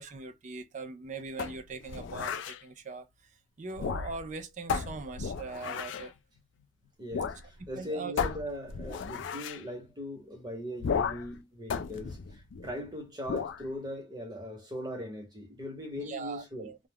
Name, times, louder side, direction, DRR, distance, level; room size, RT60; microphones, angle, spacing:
voice 1, 0.0-6.1 7.7-8.1 16.0-16.8, right 4 dB, 40° right, 0.4 m, -41 dB
sound 1, 1.4-2.6 3.7-4.3 4.7-6.1 7.1-7.4 7.7-7.8 8.2-9.6 10.8-11.3 11.7-12.8 13.3-13.6, left 6 dB, 65° left, 0.3 m, -34 dB
voice 2, 7.0-16.7, left 1 dB, 20° right, 1.0 m, -40 dB
2.3 x 2.1 x 3.4 m
head